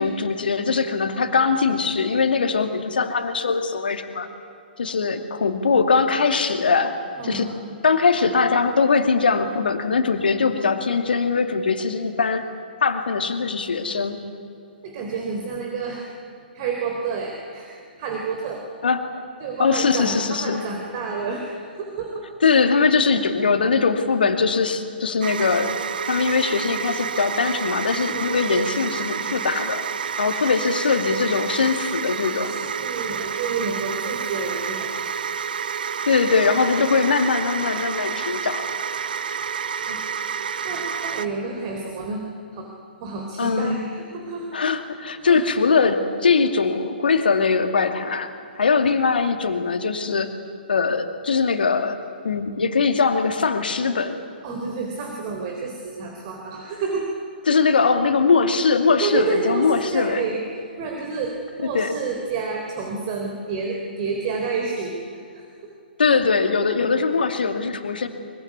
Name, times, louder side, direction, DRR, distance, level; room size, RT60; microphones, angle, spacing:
voice 1, 0.0-4.3 4.8-6.9 7.2-7.5 7.8-12.5 12.8-14.2 18.8-19.2 19.6-20.6 22.4-25.7 26.0-29.8 30.2-32.5 36.1-38.7 43.4-43.8 44.5-50.3 50.7-52.0 52.2-54.2 57.5-60.2 61.7-61.9 66.0-68.1, left 5 dB, 65° left, 7 dB, 2.3 m, -21 dB
voice 2, 7.2-7.5 14.8-16.1 16.5-18.6 19.4-21.5 21.7-22.3 28.1-28.6 32.5-34.9 39.8-40.0 40.6-42.2 42.5-42.7 43.0-44.5 45.2-45.4 54.4-57.1 59.0-60.4 60.8-65.5, right 4 dB, 35° right, 1 dB, 3.7 m, -29 dB
sound 1, 25.2-41.3, right 7 dB, 60° right, 0.9 m, -29 dB
23.5 x 23.5 x 9.7 m, 2.5 s
figure-of-eight pair, 120°, 6 cm